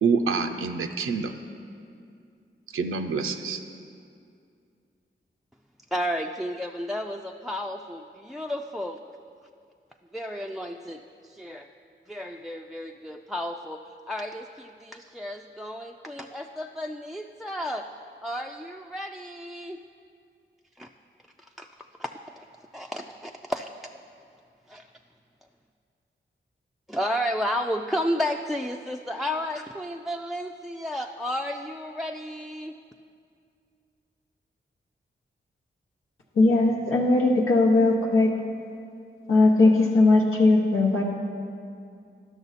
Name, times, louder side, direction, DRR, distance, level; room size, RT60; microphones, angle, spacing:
voice 1, 0.0-1.3 2.7-3.6, right 5 dB, 85° right, 7 dB, 0.5 m, -26 dB
voice 2, 5.9-9.0 10.1-11.7 12.1-13.8 14.1-17.9 18.2-19.8 20.8-20.9 21.4-22.5 22.7-23.9 24.7-24.9 26.9-32.8, equal, ahead, 4 dB, 0.3 m, -32 dB
voice 3, 36.4-38.3 39.3-41.0, left 2 dB, 90° left, -2 dB, 0.9 m, -19 dB
11.0 x 6.1 x 4.1 m, 2.4 s
cardioid pair, 45°, 21 cm